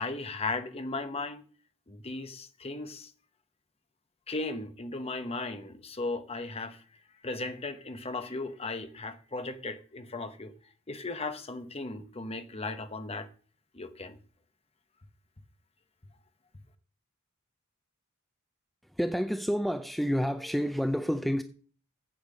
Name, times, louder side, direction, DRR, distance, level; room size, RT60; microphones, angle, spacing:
voice 1, 0.0-1.4 1.9-3.1 4.3-6.8 7.2-10.5 10.9-13.3 13.7-14.2, left 3 dB, 30° left, 0.9 m, -36 dB
voice 2, 18.8-21.4, equal, ahead, 0.4 m, -29 dB
8.6 x 8.0 x 6.6 m
head